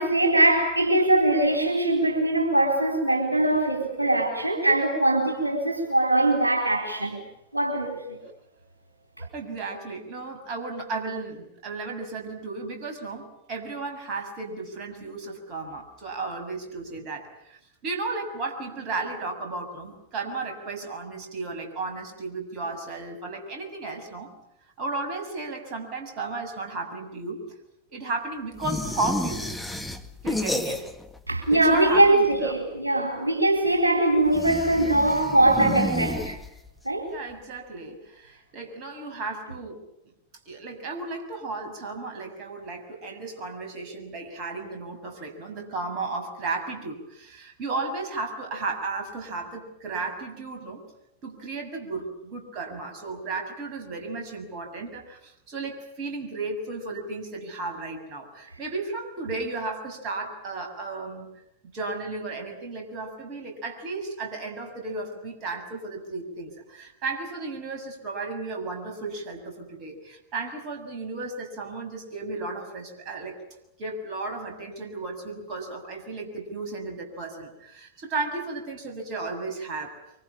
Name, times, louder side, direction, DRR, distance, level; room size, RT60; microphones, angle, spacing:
voice 1, 0.0-7.2 7.5-8.2 31.3-36.4 36.8-37.1, right 1 dB, 85° right, 4.0 m, -22 dB
voice 2, 9.2-24.3 24.8-27.4 27.9-29.4 30.2-30.9 31.5-32.5 37.0-39.8 40.4-50.8 51.2-61.3 61.6-73.4 73.8-79.9, right 3 dB, 40° right, 6.7 m, -34 dB
sound 1, 28.6-31.2 31.4-32.3 34.3-36.8, left 1 dB, ahead, 2.0 m, -31 dB
25.0 x 24.5 x 8.8 m
figure-of-eight pair, 90°, 0 cm